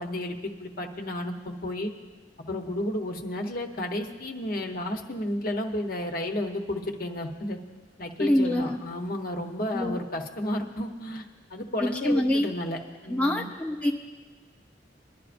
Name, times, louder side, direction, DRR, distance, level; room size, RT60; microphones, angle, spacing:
voice 1, 0.0-1.9 2.4-7.6 8.0-11.2 11.5-12.8 13.0-13.5, left 1 dB, 55° left, 3 dB, 0.9 m, -32 dB
voice 2, 8.2-8.8 9.7-10.0 11.8-12.5 13.1-13.9, left 1 dB, 10° left, 0 dB, 0.7 m, -25 dB
22.5 x 11.0 x 2.6 m, 1.4 s
head